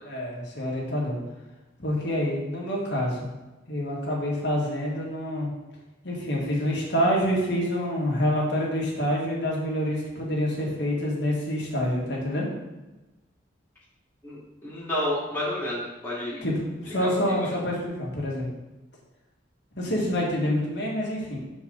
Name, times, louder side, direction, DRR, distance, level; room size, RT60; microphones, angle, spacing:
voice 1, 0.1-1.2 1.8-3.3 3.7-5.5 6.0-12.5 16.4-18.5 19.8-21.4, equal, 65° left, -3 dB, 1.7 m, -27 dB
voice 2, 14.2-16.4 17.0-17.5, left 1 dB, 10° left, -9 dB, 2.2 m, -30 dB
6.6 x 4.6 x 3.8 m, 1.1 s
head